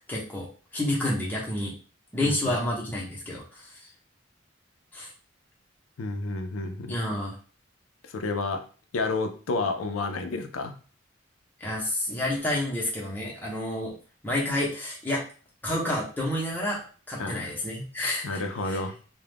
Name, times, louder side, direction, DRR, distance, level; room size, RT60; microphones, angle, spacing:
voice 1, 0.1-0.5 0.7-1.7 2.1-3.9 4.9-5.1 6.9-7.4 11.6-14.0 14.2-15.2 15.6-16.8 17.1-18.4 18.7-18.8, left 1 dB, 10° left, -5 dB, 0.7 m, -29 dB
voice 2, 2.2-2.6 6.0-7.0 8.1-8.6 8.9-10.7 17.2-17.5 18.2-18.9, left 3 dB, 90° left, 6 dB, 0.4 m, -30 dB
2.3 x 2.1 x 3.3 m, 0.39 s
head